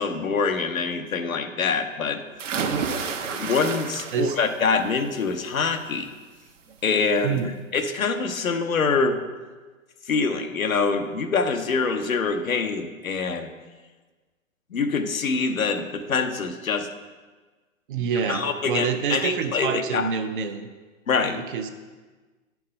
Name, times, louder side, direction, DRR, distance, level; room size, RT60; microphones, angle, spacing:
voice 1, 0.0-2.2 3.3-6.1 6.8-7.4 7.7-9.2 10.1-13.5 14.7-16.9 18.3-20.1 21.1-21.4, left 4 dB, 85° left, 6 dB, 0.9 m, -25 dB
sound 1, 2.4-4.5 4.9-5.3 6.7-6.8 7.2-7.3, right 5 dB, 65° right, 1.0 m, -30 dB
voice 2, 7.2-7.6 17.9-20.7 21.4-21.7, right 6 dB, 40° right, 8 dB, 0.6 m, -27 dB
9.0 x 4.7 x 5.3 m, 1.3 s
hypercardioid pair, 125°, 40 cm